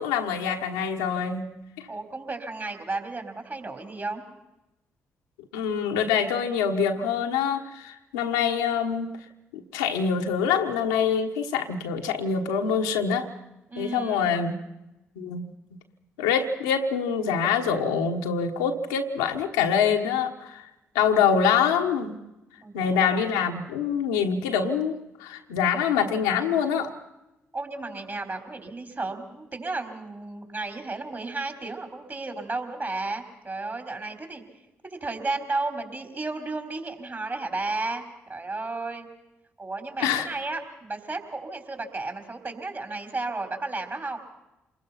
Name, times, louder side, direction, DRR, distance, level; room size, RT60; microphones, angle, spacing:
voice 1, 0.0-1.5 5.5-9.1 9.5-13.3 13.8-14.6 15.2-15.5 16.2-20.6 20.9-22.2 22.7-27.0 40.0-40.3, left 7 dB, 85° left, 3 dB, 1.3 m, -25 dB
voice 2, 1.9-4.2 13.7-14.4 22.6-23.2 27.5-34.4 35.0-38.0 38.3-39.1 39.6-44.2, right 3 dB, 35° right, 6 dB, 4.1 m, -33 dB
27.0 x 21.0 x 5.8 m, 0.95 s
hypercardioid pair, 40°, 6 cm